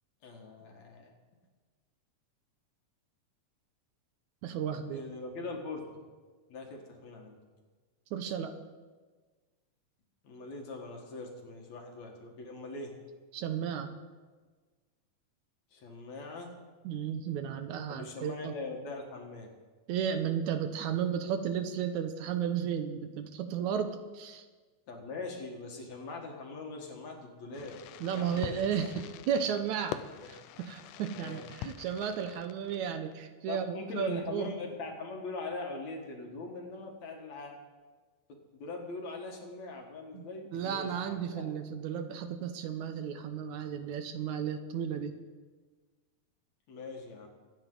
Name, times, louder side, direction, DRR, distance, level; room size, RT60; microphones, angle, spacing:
voice 1, 0.2-1.1 4.9-5.8 6.5-7.4 10.2-12.9 15.7-16.5 17.9-19.5 24.9-27.8 28.1-28.6 31.1-31.4 33.5-37.6 38.3-41.5 46.7-47.3, left 3 dB, 65° left, 2 dB, 2.9 m, -41 dB
voice 2, 4.4-5.0 8.1-8.5 13.3-13.9 16.8-18.5 19.9-24.5 28.0-34.5 40.1-40.3 40.5-45.2, right 8 dB, 75° right, 8 dB, 2.1 m, -34 dB
Fireworks, 27.5-33.1, left 12 dB, 85° left, 2.1 m, -45 dB
24.5 x 9.1 x 3.9 m, 1.4 s
omnidirectional pair, 3.6 m